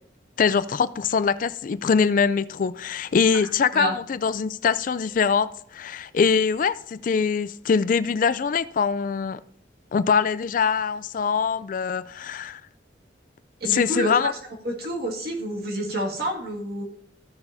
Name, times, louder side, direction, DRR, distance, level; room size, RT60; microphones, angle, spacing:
voice 1, 0.4-9.4 9.9-12.6 13.7-14.3, left 6 dB, 45° left, 0.3 m, -23 dB
voice 2, 13.6-14.1 14.6-16.8, right 1 dB, 55° right, 2.1 m, -28 dB
15.0 x 6.9 x 2.7 m
head